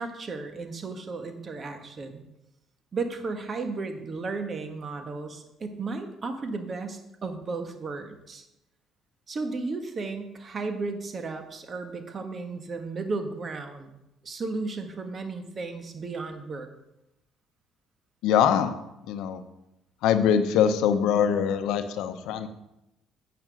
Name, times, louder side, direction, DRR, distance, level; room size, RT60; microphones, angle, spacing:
voice 1, 0.0-2.2 2.9-8.4 9.3-13.9 14.2-16.7, right 3 dB, 40° right, 6 dB, 1.5 m, -34 dB
voice 2, 18.2-18.8 19.1-19.4 20.0-22.5, left 8 dB, 80° left, 10 dB, 0.7 m, -23 dB
8.9 x 5.8 x 6.3 m, 0.88 s
supercardioid pair, 70°, 0 cm